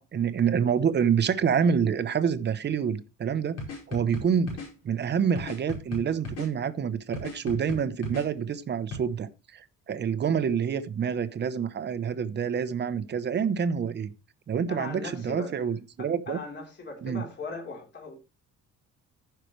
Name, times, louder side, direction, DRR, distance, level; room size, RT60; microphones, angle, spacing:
voice 1, 0.0-3.6 3.9-4.6 4.8-14.1 14.5-16.4 17.0-17.2, right 7 dB, 35° right, 0.9 m, -27 dB
sound 1, 3.6-4.7 5.4-6.5 7.1-8.3 8.9-9.0, left 2 dB, 60° left, 5.2 m, -36 dB
voice 2, 14.7-15.6 16.0-18.1, left 3 dB, 40° left, 3.7 m, -39 dB
15.0 x 5.8 x 3.2 m
cardioid pair, 145°, 29 cm